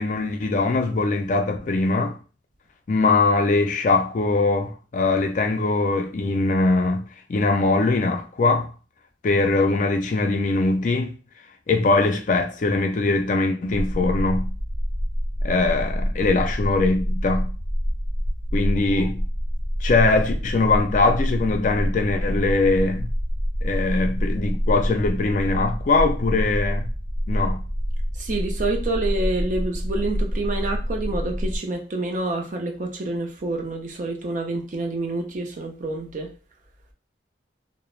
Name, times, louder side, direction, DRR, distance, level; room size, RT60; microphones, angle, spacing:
voice 1, 0.0-2.2 2.9-8.7 9.2-11.1 11.7-14.5 15.4-17.5 18.5-19.2 19.8-23.1 23.6-26.9 27.3-27.6, left 3 dB, 45° left, 0.4 m, -22 dB
sound 1, 13.7-31.6, equal, 80° right, 0.7 m, -27 dB
voice 2, 28.1-36.3, right 2 dB, 45° right, 0.5 m, -28 dB
2.3 x 2.0 x 3.0 m
head